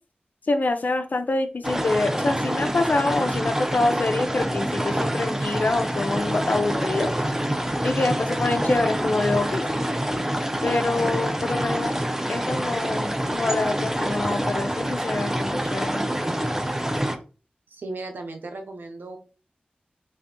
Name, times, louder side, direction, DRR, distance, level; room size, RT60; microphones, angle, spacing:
voice 1, 0.5-7.1 7.8-9.7 10.6-12.0 12.3-16.1, left 2 dB, 60° left, 8 dB, 0.6 m, -25 dB
sound 1, 1.6-17.2, right 1 dB, 15° right, 0.6 m, -26 dB
voice 2, 17.7-19.2, right 2 dB, 85° right, 5 dB, 0.7 m, -36 dB
3.4 x 2.6 x 3.7 m, 0.35 s
cardioid pair, 40°, 3 cm